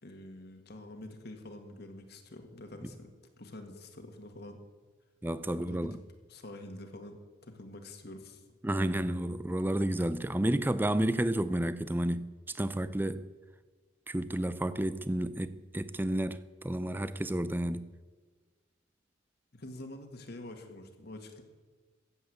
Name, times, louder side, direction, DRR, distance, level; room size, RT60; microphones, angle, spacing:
voice 1, 0.0-3.1 3.4-4.6 5.4-6.0 6.3-8.6 19.5-21.4, left 1 dB, 50° left, 1.8 m, -47 dB
voice 2, 5.2-6.0 8.6-13.3 14.1-17.9, right 1 dB, 10° right, 0.5 m, -31 dB
14.5 x 8.1 x 8.0 m
head